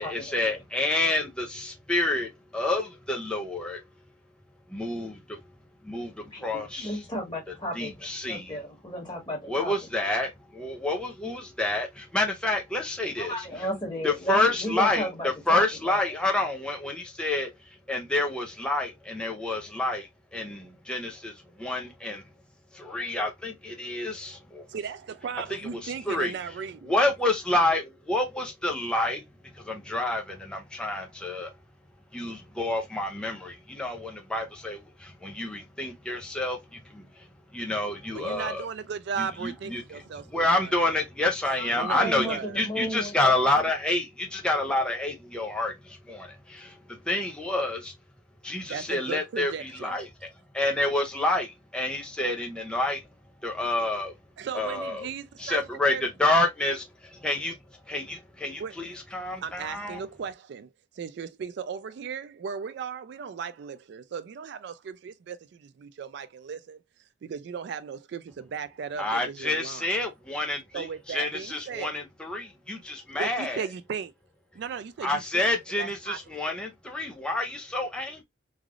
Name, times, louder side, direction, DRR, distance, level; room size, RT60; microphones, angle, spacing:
voice 1, 0.0-3.8 4.7-5.4 5.8-6.9 7.8-8.5 9.5-13.3 14.0-17.5 17.9-22.2 22.7-24.7 25.5-26.3 26.9-29.2 29.5-31.5 32.1-37.3 37.5-38.7 39.2-39.8 40.3-47.9 48.4-50.1 50.5-53.0 53.4-54.1 54.5-55.1 55.4-57.6 57.9-60.0 69.0-73.6 75.0-78.2, left 2 dB, 5° left, 0.5 m, -28 dB
voice 2, 6.2-9.7 13.2-16.0 41.6-43.7, equal, 25° left, 1.4 m, -34 dB
voice 3, 24.7-26.9 38.1-40.7 41.7-42.6 48.7-50.0 54.4-55.6 55.9-56.5 58.6-58.8 59.4-66.8 67.2-69.9 70.7-71.9 73.1-74.1 74.5-75.5 75.8-76.2 76.5-76.6, right 6 dB, 60° right, 0.3 m, -36 dB
3.2 x 2.4 x 2.4 m
head